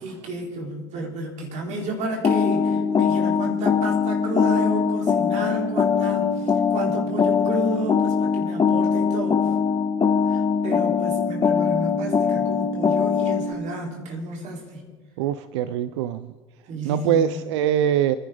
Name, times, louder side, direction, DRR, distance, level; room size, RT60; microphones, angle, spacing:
voice 1, 0.0-9.4 10.3-14.8 16.7-17.3, right 2 dB, 55° right, 0 dB, 4.2 m, -31 dB
sound 1, 2.2-13.5, left 6 dB, 30° left, 1.6 m, -22 dB
voice 2, 15.2-16.3 16.8-18.1, right 10 dB, 75° right, 15 dB, 0.6 m, -23 dB
29.5 x 11.0 x 3.9 m, 1.5 s
hypercardioid pair, 80°, 14 cm